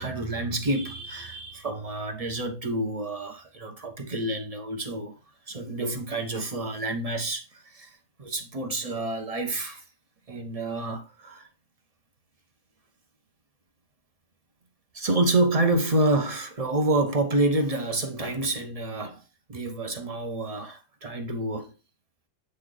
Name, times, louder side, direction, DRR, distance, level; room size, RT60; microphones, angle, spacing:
voice 1, 0.0-5.2 5.5-9.8 10.3-11.5 14.9-19.2 19.5-21.7, right 2 dB, 35° right, 0.6 m, -28 dB
8.0 x 3.2 x 3.8 m
omnidirectional pair, 1.5 m